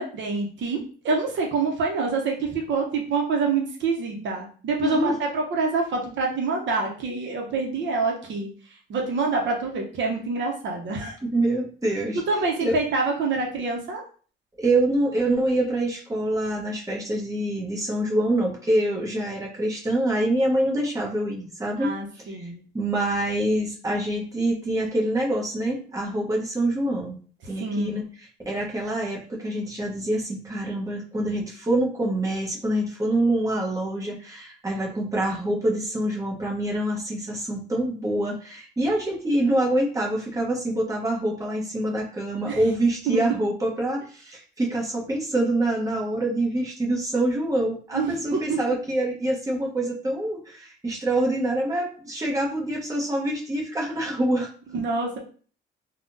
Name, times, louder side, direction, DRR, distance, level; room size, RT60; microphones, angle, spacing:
voice 1, 0.0-8.5 8.9-11.2 12.3-14.0 21.8-22.6 27.6-28.0 42.5-42.6 43.1-43.2 47.9-48.2 48.5-48.6 54.7-55.2, right 4 dB, 70° right, 1 dB, 0.8 m, -26 dB
voice 2, 4.8-5.2 11.2-12.2 12.6-12.8 14.6-21.9 22.3-22.5 22.7-27.2 27.5-54.5, right 1 dB, 15° right, -2 dB, 1.0 m, -25 dB
3.5 x 2.3 x 2.6 m, 0.42 s
cardioid pair, 90°, 20 cm